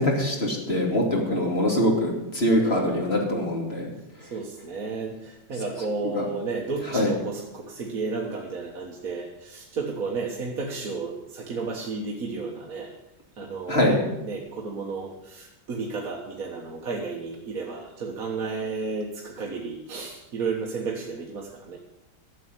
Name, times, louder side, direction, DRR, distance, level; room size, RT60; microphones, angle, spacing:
voice 1, 0.0-3.9 6.1-6.3 6.9-7.1 13.7-14.0, left 1 dB, 30° left, 0 dB, 2.8 m, -23 dB
voice 2, 1.1-1.4 2.6-3.2 4.2-12.9 13.4-13.9 14.2-21.8, right 4 dB, 50° right, -1 dB, 1.7 m, -33 dB
13.0 x 7.7 x 9.3 m, 0.93 s
omnidirectional pair, 2.0 m